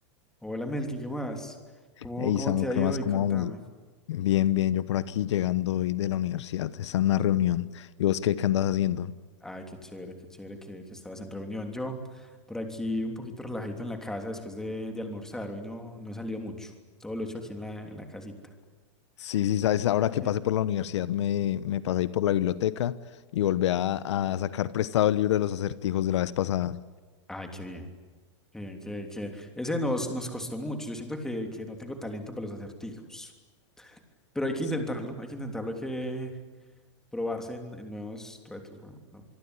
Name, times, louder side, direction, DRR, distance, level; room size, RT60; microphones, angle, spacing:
voice 1, 0.4-1.6 2.0-3.6 9.4-16.7 17.0-18.3 20.2-20.3 27.3-27.9 28.5-33.3 33.8-34.0 34.3-36.3 37.1-39.3, left 1 dB, 5° left, 3.2 m, -35 dB
voice 2, 2.2-3.5 4.1-9.1 19.2-23.0 23.3-26.8, left 12 dB, 70° left, 1.0 m, -26 dB
25.5 x 22.5 x 9.9 m
supercardioid pair, 160°, 15 cm